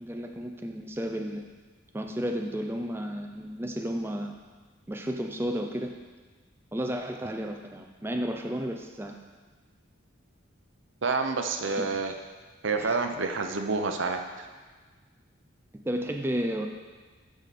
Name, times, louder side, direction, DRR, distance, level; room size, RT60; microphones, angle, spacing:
voice 1, 0.0-1.5 1.9-4.4 4.9-5.9 6.7-9.2 11.8-11.9 12.8-12.9 15.8-16.7, equal, 10° right, 3 dB, 0.4 m, -32 dB
voice 2, 11.0-12.1 12.6-14.5, right 4 dB, 70° right, 5 dB, 0.7 m, -28 dB
13.0 x 4.9 x 4.2 m, 1.4 s
head